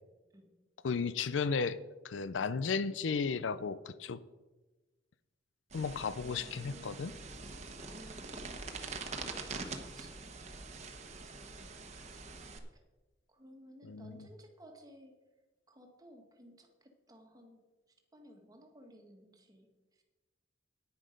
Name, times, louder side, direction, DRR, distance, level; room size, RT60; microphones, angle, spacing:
voice 1, 0.8-1.8 2.0-4.2 5.7-7.1 13.8-14.3, left 5 dB, 80° left, 16 dB, 0.5 m, -34 dB
sound 1, 5.7-12.6, right 4 dB, 40° right, 1.1 m, -44 dB
voice 2, 6.2-7.3 7.8-10.8 11.1-12.3 13.3-15.2 15.7-17.6 18.1-19.7, equal, 20° right, 3 dB, 1.6 m, -57 dB
10.0 x 9.6 x 5.2 m, 1.2 s
head